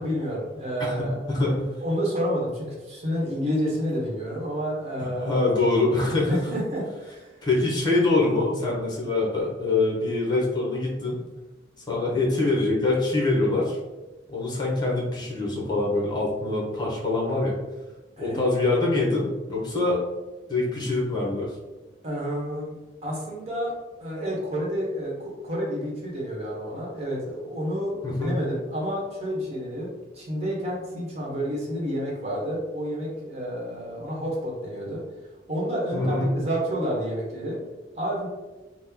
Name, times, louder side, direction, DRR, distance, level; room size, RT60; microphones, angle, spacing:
voice 1, 0.0-5.4 6.3-7.3 18.2-18.4 22.0-22.7 23.0-23.7 24.0-35.0 35.5-37.6 38.0-38.3, equal, 40° right, -4 dB, 1.0 m, -30 dB
voice 2, 0.8-1.7 5.0-6.4 7.4-11.2 11.9-13.8 14.3-17.6 18.2-20.0 20.5-21.5 28.0-28.3 35.9-36.3, left 2 dB, 25° left, -3 dB, 0.9 m, -24 dB
3.0 x 2.1 x 3.6 m, 1.2 s
head